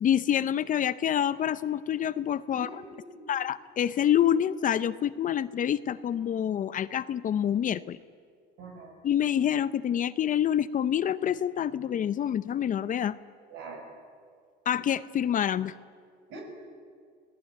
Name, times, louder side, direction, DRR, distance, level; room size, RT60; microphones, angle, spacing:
voice 1, 0.0-2.7 3.3-8.0 9.0-13.2 14.7-15.7, left 10 dB, 40° left, 15 dB, 0.7 m, -27 dB
voice 2, 2.5-3.3 8.6-8.9 13.5-13.9 16.3-16.4, right 3 dB, 75° right, 2 dB, 7.0 m, -43 dB
26.0 x 18.0 x 9.2 m, 2.1 s
cardioid pair, 120°, 21 cm